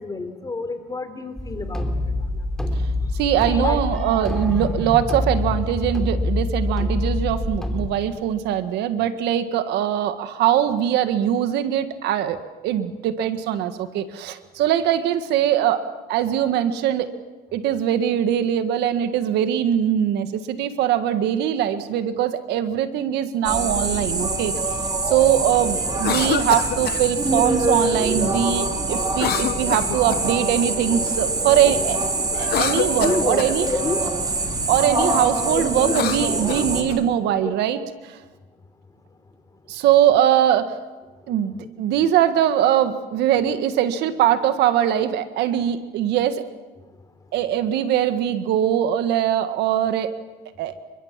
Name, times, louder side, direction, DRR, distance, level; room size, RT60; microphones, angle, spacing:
voice 1, 0.0-1.9 2.3-2.5 3.5-3.8 32.6-34.0 35.0-35.2 35.4-36.1 37.0-37.1 37.4-37.5 41.3-41.7 42.1-42.2 43.5-43.6, left 3 dB, 20° left, 9 dB, 3.6 m, -29 dB
sound 1, 1.4-7.9, left 2 dB, 5° left, 3.2 m, -25 dB
voice 2, 3.2-15.8 16.1-17.1 17.5-24.5 25.1-32.0 32.3-33.7 34.7-37.8 39.7-40.7 41.3-41.5 41.8-46.4 47.3-50.1 50.6-50.7, right 10 dB, 85° right, 10 dB, 1.7 m, -21 dB
sound 2, 23.4-36.8, right 2 dB, 25° right, 4.6 m, -24 dB
Cough, 25.9-27.0 29.1-30.4 32.3-33.6 35.8-37.0, left 12 dB, 70° left, 1.0 m, -27 dB
29.0 x 23.5 x 7.5 m, 1.2 s
cardioid pair, 110°, 17 cm